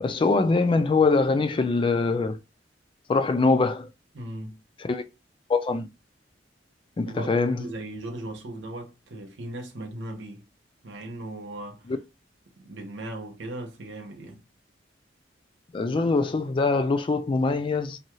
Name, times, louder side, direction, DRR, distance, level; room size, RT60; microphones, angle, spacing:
voice 1, 0.0-2.4 3.1-3.9 4.8-5.0 5.5-5.9 7.0-7.6 11.9-12.0 15.7-18.0, left 3 dB, 30° left, 0.3 m, -23 dB
voice 2, 4.1-4.6 7.1-10.4 10.8-11.8 12.6-14.4, right 1 dB, 80° right, 0.8 m, -38 dB
2.6 x 2.3 x 3.0 m
head